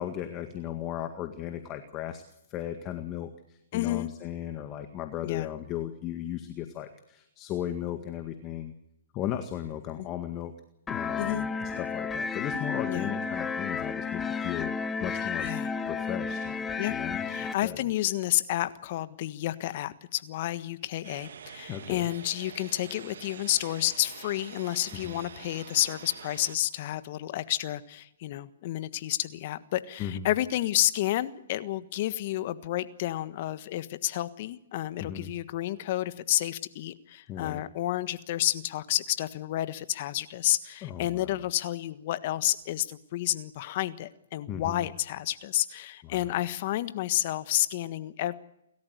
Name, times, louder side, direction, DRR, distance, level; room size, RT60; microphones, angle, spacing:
voice 1, 0.0-2.2 2.5-3.3 3.7-8.7 9.1-10.5 10.9-14.7 15.0-15.5 15.9-16.5 16.9-17.8 21.7-22.1 25.0-25.2 30.0-30.3 35.0-35.3 37.3-37.6 40.8-41.4 44.5-44.9 46.0-46.3, left 10 dB, 30° left, 8 dB, 1.8 m, -36 dB
voice 2, 3.7-4.1 5.2-5.5 10.0-10.1 11.2-11.5 12.8-13.1 15.4-15.7 16.8-17.0 17.2-48.3, left 14 dB, 45° left, 13 dB, 1.5 m, -30 dB
sound 1, 10.9-17.5, left 5 dB, 10° left, 1.2 m, -32 dB
sound 2, 21.0-26.6, right 7 dB, 65° right, 1.7 m, -46 dB
29.5 x 14.0 x 8.2 m, 0.82 s
hypercardioid pair, 135°, 0 cm